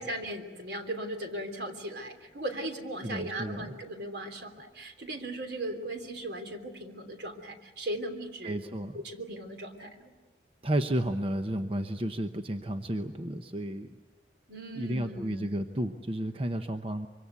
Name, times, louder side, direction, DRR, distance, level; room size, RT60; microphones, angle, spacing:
voice 1, 0.0-8.6 8.9-10.1 14.5-15.5, right 1 dB, 70° right, 6 dB, 3.2 m, -38 dB
voice 2, 3.0-3.8 8.4-9.0 10.6-14.0 14.8-17.1, right 1 dB, 30° right, 7 dB, 0.8 m, -32 dB
25.5 x 24.0 x 8.3 m, 1.3 s
head